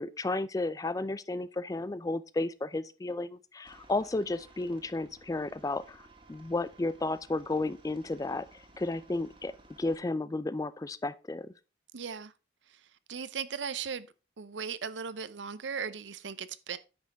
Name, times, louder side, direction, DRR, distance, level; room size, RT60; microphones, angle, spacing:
voice 1, 0.0-11.5, left 2 dB, 20° left, 0.3 m, -33 dB
Aircraft, 3.6-10.0, right 2 dB, 25° right, 1.8 m, -57 dB
voice 2, 11.9-12.3 12.7-14.1 14.4-16.8, right 6 dB, 75° right, 0.6 m, -38 dB
9.6 x 6.2 x 3.5 m
head